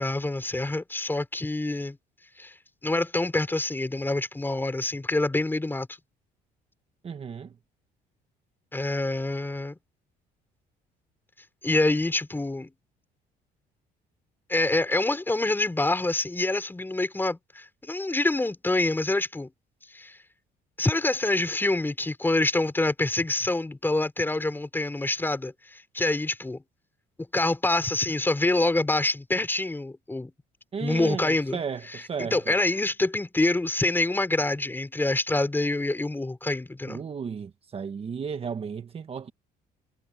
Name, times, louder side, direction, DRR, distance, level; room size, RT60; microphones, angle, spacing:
voice 1, 0.0-2.0 2.4-2.5 2.8-5.9 8.7-9.8 11.6-12.7 14.5-19.5 19.9-20.2 20.8-26.6 27.3-30.3 30.8-31.6 31.9-37.0, left 2 dB, 10° left, 4.9 m, -26 dB
voice 2, 7.0-7.5 30.7-32.5 36.9-39.3, right 6 dB, 35° right, 1.3 m, -34 dB
cardioid pair, 110°, 17 cm